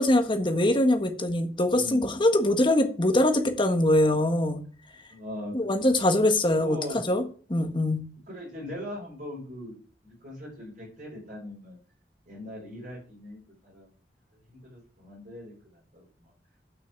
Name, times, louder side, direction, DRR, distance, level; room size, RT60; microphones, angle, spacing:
voice 1, 0.0-4.6 5.5-6.8 7.1-7.2 7.5-8.0, left 1 dB, 30° left, 6 dB, 1.6 m, -23 dB
voice 2, 1.7-2.2 5.1-5.5 5.9-6.0 6.6-7.0 8.3-9.8 10.0-11.8 12.2-13.9 14.3-16.3, left 1 dB, 50° right, -5 dB, 5.2 m, -40 dB
9.2 x 6.2 x 7.5 m, 0.39 s
head